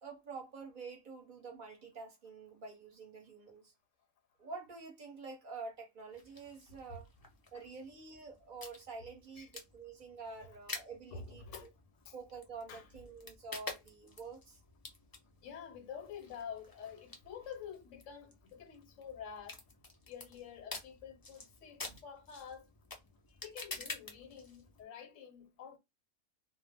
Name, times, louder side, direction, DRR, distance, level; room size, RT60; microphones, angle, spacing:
voice 1, 0.0-3.7 4.4-7.1 7.5-11.7 12.1-14.6 21.8-22.0, right 4 dB, 45° right, 0.8 m, -48 dB
sound 1, 6.1-24.8, left 3 dB, 35° left, 0.3 m, -50 dB
voice 2, 11.1-11.7 12.1-12.2 12.7-12.9 15.4-19.6 20.1-22.7 23.3-25.8, left 7 dB, 75° left, 1.0 m, -48 dB
2.3 x 2.0 x 3.3 m
omnidirectional pair, 1.3 m